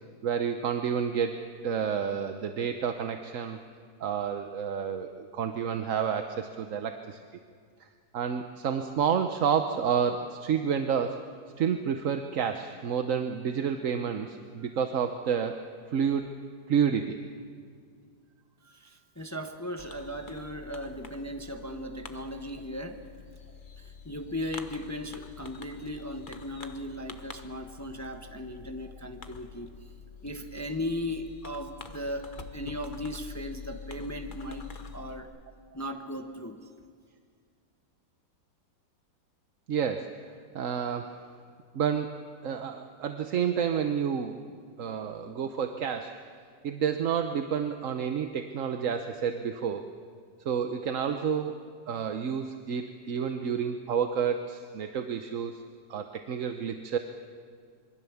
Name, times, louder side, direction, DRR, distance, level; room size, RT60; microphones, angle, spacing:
voice 1, 0.2-3.6 4.0-7.2 8.1-11.2 11.6-15.6 15.9-16.3 16.7-17.2 18.7-18.8 39.7-40.2 40.5-41.2 41.7-42.1 42.4-44.4 44.8-46.2 46.6-49.9 50.4-51.6 51.9-55.6 55.9-57.0, right 7 dB, 55° right, 7 dB, 1.1 m, -29 dB
voice 2, 18.7-23.1 23.8-29.7 30.2-35.3 35.7-36.7, left 1 dB, 10° left, 5 dB, 0.9 m, -37 dB
Fireworks, 19.8-35.2, left 5 dB, 35° left, 1.0 m, -46 dB
26.0 x 23.0 x 7.1 m, 2.1 s
omnidirectional pair, 1.9 m